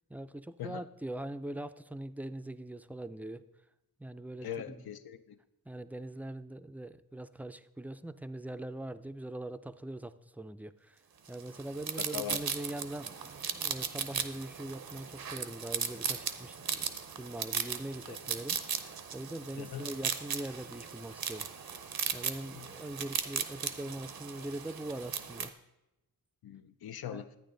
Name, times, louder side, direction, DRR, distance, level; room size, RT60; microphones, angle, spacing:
voice 1, 0.1-3.5 4.0-4.8 5.7-11.0 11.3-16.9 17.1-21.8 22.1-25.5 27.1-27.2, right 1 dB, 5° right, 12 dB, 0.3 m, -42 dB
voice 2, 4.4-5.4 12.0-12.4 18.1-18.2 19.6-19.9 22.6-22.7 26.4-27.3, left 10 dB, 90° left, 11 dB, 0.6 m, -41 dB
sound 1, 11.3-25.5, right 7 dB, 80° right, 0.7 m, -37 dB
11.5 x 9.1 x 3.8 m, 0.92 s
wide cardioid pair, 80°, 36 cm